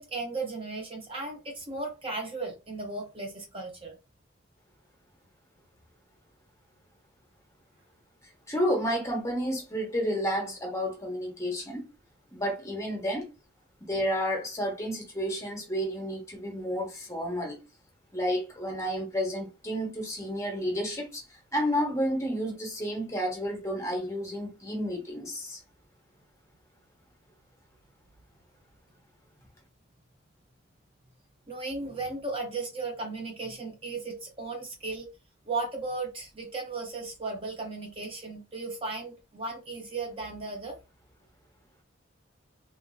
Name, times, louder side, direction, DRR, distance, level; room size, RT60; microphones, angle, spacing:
voice 1, 0.0-4.0 31.5-35.1 35.5-40.8, right 3 dB, 30° right, 0.5 m, -36 dB
voice 2, 8.5-11.8 12.3-13.3 13.9-17.6 18.1-25.6, equal, 15° left, 0.8 m, -31 dB
3.1 x 2.5 x 2.3 m
head